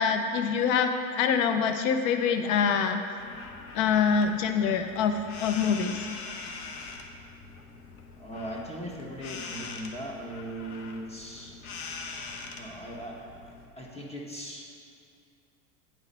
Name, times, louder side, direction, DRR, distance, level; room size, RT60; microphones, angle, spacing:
voice 1, 0.0-3.0 3.7-6.1, left 6 dB, 60° left, 7 dB, 0.7 m, -25 dB
sound 1, 3.2-13.7, left 4 dB, 90° left, 0.9 m, -43 dB
voice 2, 8.2-11.5 12.6-14.7, right 1 dB, 15° left, -2 dB, 1.5 m, -39 dB
9.6 x 3.9 x 5.6 m, 2.5 s
hypercardioid pair, 105°, 43 cm